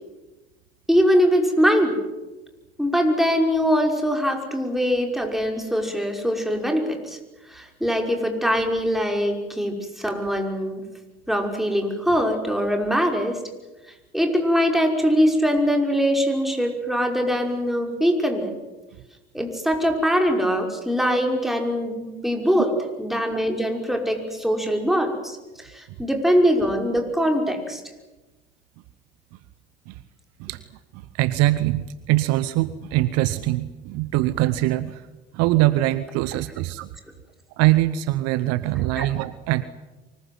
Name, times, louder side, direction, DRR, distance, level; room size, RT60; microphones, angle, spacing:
voice 1, 0.9-2.0 2.8-7.2 7.5-10.8 11.3-13.4 14.1-18.6 19.3-22.7 23.0-27.8 39.0-39.1, equal, ahead, 3 dB, 5.6 m, -22 dB
voice 2, 30.9-35.0 35.3-36.9 37.6-39.7, right 16 dB, 60° right, 15 dB, 1.0 m, -22 dB
24.5 x 21.0 x 9.5 m, 1.1 s
figure-of-eight pair, 60°, 29 cm